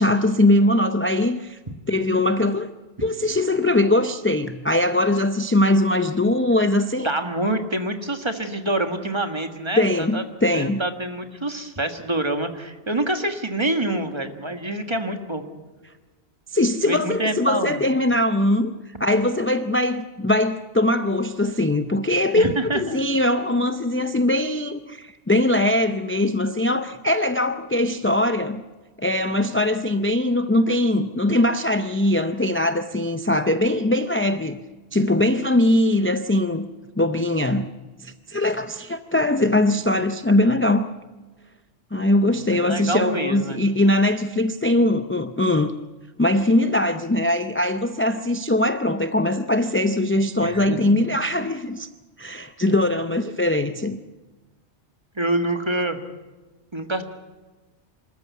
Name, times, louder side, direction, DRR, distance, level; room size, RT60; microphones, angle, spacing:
voice 1, 0.0-1.6 1.9-2.7 3.0-7.1 9.8-10.8 16.5-18.7 19.0-28.6 29.0-34.6 34.9-36.7 37.0-37.7 38.0-40.9 41.9-45.7 46.2-51.9 52.2-54.0, left 1 dB, 20° left, 0.3 m, -21 dB
voice 2, 7.0-10.2 10.5-15.4 16.9-17.8 22.4-23.0 42.3-43.6 50.4-50.8 55.1-56.0 56.7-57.0, right 1 dB, 25° right, 1.5 m, -26 dB
25.5 x 13.5 x 8.2 m
omnidirectional pair, 1.2 m